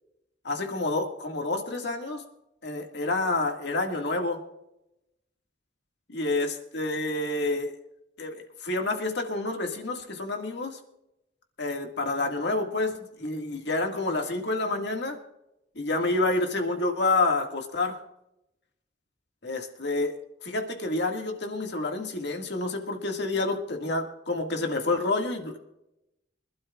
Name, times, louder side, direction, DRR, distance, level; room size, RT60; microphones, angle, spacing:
voice 1, 0.4-2.2 2.6-4.4 6.1-7.7 8.2-10.8 11.6-15.2 15.8-18.0 19.4-20.1 20.4-25.6, left 2 dB, 65° left, 3 dB, 1.9 m, -28 dB
25.5 x 12.0 x 2.4 m, 0.87 s
head